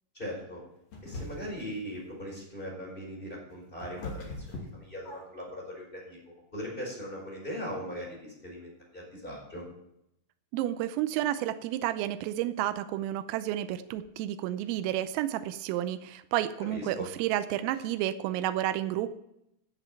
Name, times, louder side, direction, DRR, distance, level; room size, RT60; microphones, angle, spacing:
voice 1, 0.1-0.6 1.0-9.6 16.7-17.1, equal, 10° left, -3 dB, 4.0 m, -40 dB
sound 1, 0.9-1.7 3.2-5.5, left 2 dB, 40° left, 2.8 m, -41 dB
voice 2, 10.5-19.2, right 12 dB, 90° right, 11 dB, 3.4 m, -31 dB
15.5 x 7.0 x 5.9 m, 0.80 s
omnidirectional pair, 5.9 m